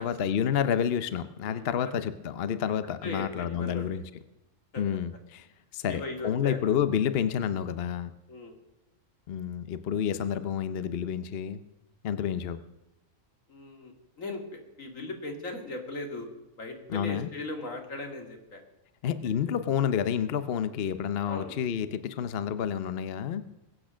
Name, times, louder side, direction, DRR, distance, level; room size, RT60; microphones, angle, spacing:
voice 1, 0.0-4.0 4.8-5.5 5.7-8.1 9.3-11.6 12.0-12.6 16.9-17.3 19.0-23.4, left 8 dB, 55° left, 12 dB, 0.9 m, -29 dB
voice 2, 3.0-4.0 4.7-4.8 5.9-6.6 8.3-8.5 13.5-16.3 16.6-18.6 19.0-19.1 21.2-21.6, left 2 dB, 90° left, 4 dB, 2.7 m, -38 dB
21.5 x 8.7 x 6.2 m, 0.95 s
omnidirectional pair, 1.3 m